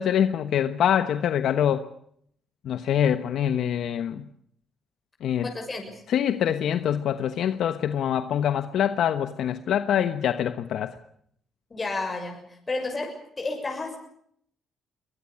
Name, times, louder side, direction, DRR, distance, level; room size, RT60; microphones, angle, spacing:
voice 1, 0.0-1.9 2.6-4.2 5.2-5.5 6.1-11.0, left 9 dB, 75° left, 11 dB, 1.1 m, -24 dB
voice 2, 5.4-6.0 11.7-14.0, left 3 dB, 25° left, 2 dB, 6.8 m, -32 dB
23.0 x 19.5 x 8.6 m, 0.68 s
cardioid pair, 90°, 0 cm